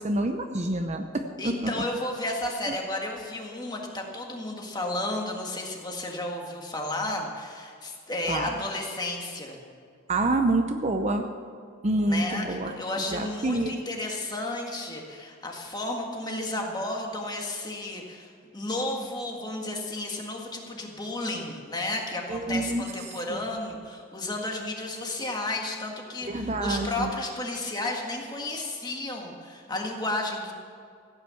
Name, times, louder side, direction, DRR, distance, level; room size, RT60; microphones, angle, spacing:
voice 1, 0.0-1.8 8.3-8.5 10.1-11.2 11.8-12.7 13.1-13.8 22.3-23.4 26.2-27.1, right 2 dB, 30° right, 6 dB, 0.6 m, -27 dB
voice 2, 1.4-9.6 12.1-30.5, left 2 dB, 20° left, 1 dB, 1.7 m, -33 dB
15.5 x 9.2 x 7.0 m, 2.3 s
head